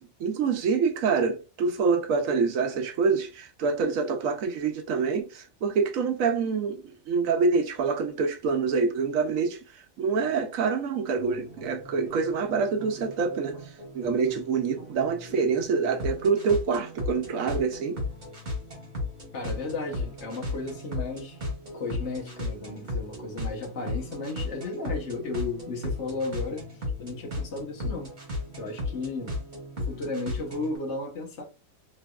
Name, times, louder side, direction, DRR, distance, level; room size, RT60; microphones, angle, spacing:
voice 1, 0.2-13.6 13.9-18.0, right 5 dB, 85° right, 1.1 m, -26 dB
sound 1, 11.2-30.8, left 2 dB, 40° right, 1.2 m, -36 dB
voice 2, 19.3-21.4 21.7-26.7 27.0-28.1 28.6-29.3 29.9-31.4, left 3 dB, 60° left, 1.2 m, -34 dB
3.4 x 2.9 x 2.3 m
omnidirectional pair, 1.4 m